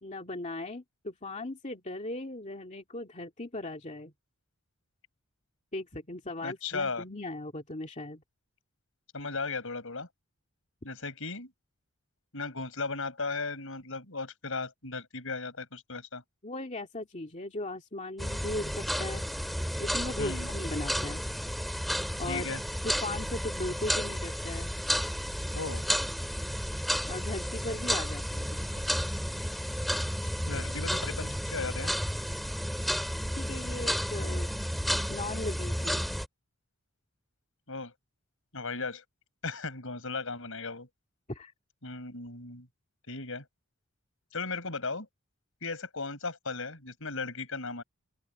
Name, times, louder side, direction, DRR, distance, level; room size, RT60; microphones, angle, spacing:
voice 1, 0.0-4.1 5.7-8.2 16.4-19.2 19.8-21.2 22.2-22.5 22.8-24.7 27.1-29.0 33.4-34.5 35.1-36.1 41.3-41.5, left 2 dB, 30° left, 2.3 m, -38 dB
voice 2, 6.4-7.0 9.1-10.1 10.8-11.5 12.3-16.2 20.2-20.5 22.3-22.6 25.5-25.8 30.5-31.9 37.7-37.9 38.5-39.0 39.4-40.9 41.8-42.7 43.1-43.5 44.3-45.1 45.6-47.8, left 4 dB, 65° left, 5.8 m, -36 dB
sound 1, 18.2-36.3, equal, ahead, 2.6 m, -32 dB
open air
head